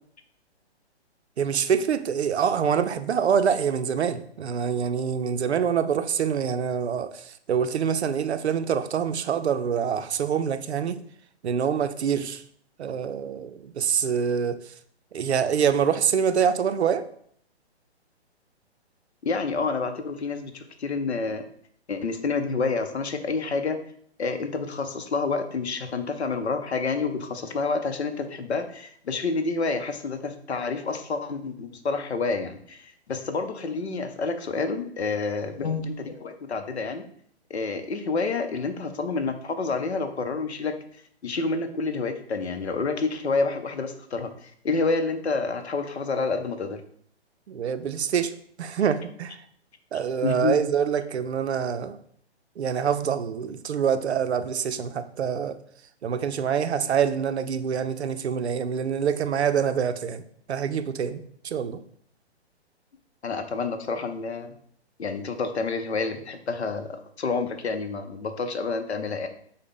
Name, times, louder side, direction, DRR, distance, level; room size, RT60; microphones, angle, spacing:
voice 1, 1.4-11.0 11.4-12.4 12.8-14.6 15.1-17.0 47.5-48.3 48.6-49.4 49.9-52.0 52.6-55.6 56.0-60.2 60.5-61.8, right 7 dB, 70° right, 0.5 m, -25 dB
voice 2, 19.2-21.4 21.9-23.8 24.2-37.1 37.5-40.7 41.2-46.8 50.2-50.6 63.2-64.5 65.0-66.9 67.2-69.3, left 4 dB, 75° left, 0.7 m, -28 dB
6.3 x 2.1 x 3.6 m
figure-of-eight pair, 130°, 34 cm